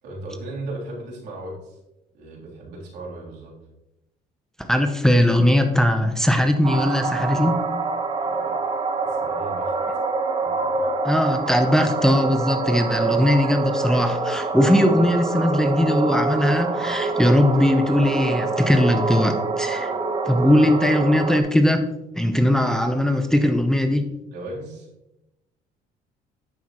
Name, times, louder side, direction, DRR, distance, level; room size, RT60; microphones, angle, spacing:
voice 1, 0.0-1.8 2.1-3.5 8.2-8.7 9.0-9.7 10.4-10.9 24.3-24.9, right 2 dB, 80° right, -4 dB, 3.3 m, -36 dB
voice 2, 4.6-7.6 11.0-19.9 20.3-21.8 22.1-24.1, left 1 dB, 5° left, 5 dB, 0.7 m, -19 dB
sound 1, 6.6-21.4, right 3 dB, 30° right, 1.1 m, -26 dB
9.4 x 7.0 x 3.0 m, 0.92 s
cardioid pair, 110°, 17 cm